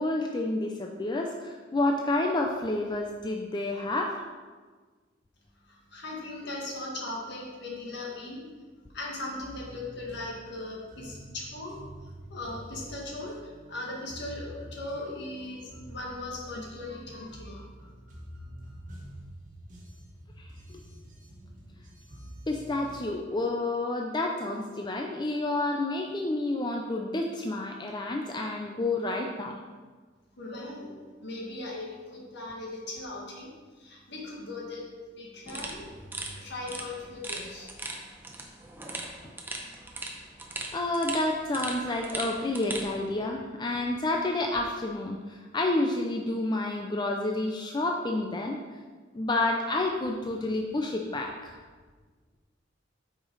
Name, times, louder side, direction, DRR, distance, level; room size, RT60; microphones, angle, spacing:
voice 1, 0.0-4.1 20.4-20.8 22.5-29.6 40.7-48.6 49.1-51.6, left 2 dB, 25° left, 1 dB, 0.5 m, -29 dB
voice 2, 5.7-8.5 8.9-11.8 12.3-13.4 13.7-17.7 30.4-31.0 31.2-33.5 33.8-37.7, left 2 dB, 65° left, -2 dB, 1.7 m, -39 dB
sound 1, 9.4-23.0, equal, 45° right, 1.6 m, -47 dB
sound 2, 35.5-42.9, right 2 dB, 10° right, 0.8 m, -39 dB
8.6 x 5.1 x 3.9 m, 1.4 s
head